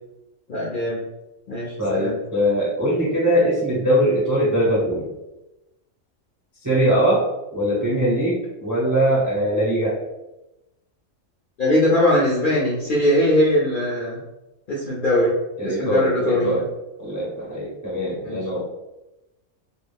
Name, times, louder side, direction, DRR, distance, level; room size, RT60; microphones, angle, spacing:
voice 1, 0.5-1.0 1.5-2.2 11.6-14.2 14.7-15.3 15.6-16.6 18.2-18.5, left 1 dB, 55° left, -5 dB, 0.6 m, -21 dB
voice 2, 1.8-5.1 6.6-7.2 7.5-10.0 15.6-16.6 17.0-18.6, equal, 20° right, -7 dB, 0.5 m, -21 dB
2.4 x 2.2 x 3.2 m, 0.96 s
omnidirectional pair, 1.4 m